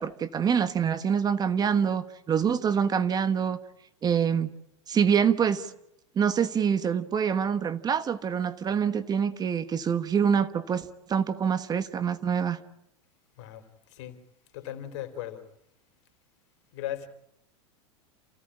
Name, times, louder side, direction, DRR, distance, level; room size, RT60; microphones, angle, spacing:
voice 1, 0.0-3.6 4.0-4.5 4.9-5.7 6.1-12.6, right 7 dB, 25° right, 1.3 m, -25 dB
voice 2, 14.5-15.4 16.7-17.1, left 12 dB, 65° left, 3.8 m, -37 dB
28.5 x 16.5 x 10.0 m
hypercardioid pair, 120°, 16 cm